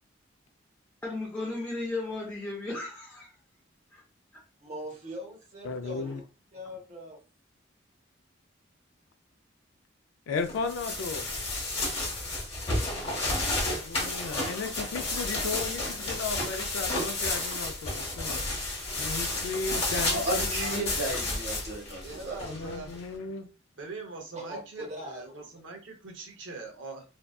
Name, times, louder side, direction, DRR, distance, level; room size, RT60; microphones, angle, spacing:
voice 1, 1.0-3.3 3.9-4.0, left 2 dB, 10° left, -5 dB, 0.5 m, -35 dB
voice 2, 4.6-6.2 6.5-7.2 24.3-25.5, equal, 35° right, 1 dB, 0.8 m, -41 dB
voice 3, 5.6-6.2 10.3-11.3 13.7-18.4 19.0-20.9 22.5-23.5, left 4 dB, 90° left, 6 dB, 0.3 m, -35 dB
sound 1, 10.5-23.0, left 2 dB, 30° left, 0.9 m, -31 dB
voice 4, 14.2-14.6 19.6-20.0 20.6-20.8 22.0-22.9 23.8-27.0, right 3 dB, 75° right, 3 dB, 0.7 m, -42 dB
voice 5, 20.1-22.4, right 1 dB, 55° right, -4 dB, 1.1 m, -33 dB
2.6 x 2.3 x 2.2 m, 0.34 s
head